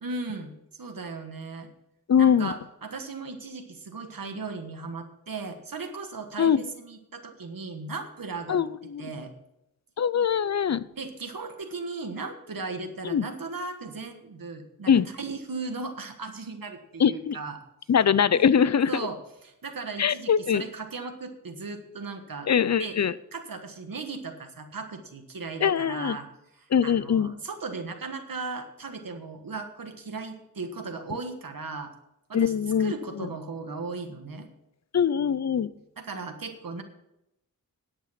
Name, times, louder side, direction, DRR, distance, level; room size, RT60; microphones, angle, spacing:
voice 1, 0.0-1.7 2.2-8.7 9.0-9.3 10.9-17.6 18.3-18.4 18.9-19.2 19.4-22.5 22.8-23.0 23.3-26.3 26.5-31.9 32.3-32.5 32.8-34.5 36.0-36.8, right 4 dB, 80° right, 6 dB, 1.4 m, -37 dB
voice 2, 2.1-2.5 6.4-6.6 8.5-9.1 10.0-10.8 13.1-13.2 14.9-15.1 17.0-17.4 17.9-18.9 20.0-20.6 22.5-23.1 25.6-26.2 26.7-27.3 32.3-33.3 34.9-35.7, left 7 dB, 50° left, 17 dB, 0.5 m, -22 dB
10.0 x 8.6 x 5.8 m, 0.85 s
wide cardioid pair, 70°, 34 cm